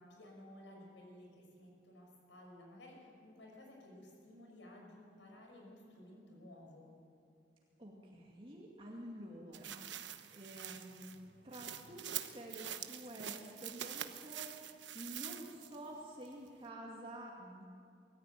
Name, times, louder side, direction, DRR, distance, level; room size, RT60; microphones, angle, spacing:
voice 1, 0.0-6.9, left 1 dB, 85° left, 0 dB, 6.1 m, -56 dB
voice 2, 7.8-9.9 10.3-11.1 11.4-14.5 14.9-17.6, right 1 dB, 30° right, -2 dB, 2.3 m, -49 dB
sound 1, 9.5-15.9 16.2-16.3, right 10 dB, 80° right, 1.1 m, -45 dB
23.5 x 14.0 x 9.4 m, 2.5 s
head